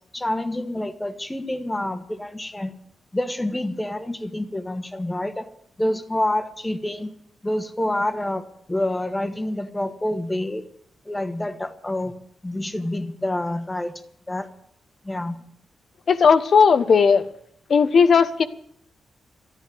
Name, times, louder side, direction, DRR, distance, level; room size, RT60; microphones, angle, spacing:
voice 1, 0.1-2.7 3.1-5.5 5.8-7.1 7.4-10.6 11.0-12.1 12.4-13.9 14.3-14.5 15.0-15.4, left 1 dB, 15° left, 8 dB, 1.6 m, -27 dB
voice 2, 16.1-17.2 17.7-18.4, left 5 dB, 60° left, 11 dB, 1.1 m, -16 dB
13.5 x 10.0 x 9.5 m, 0.68 s
cardioid pair, 95°, 0 cm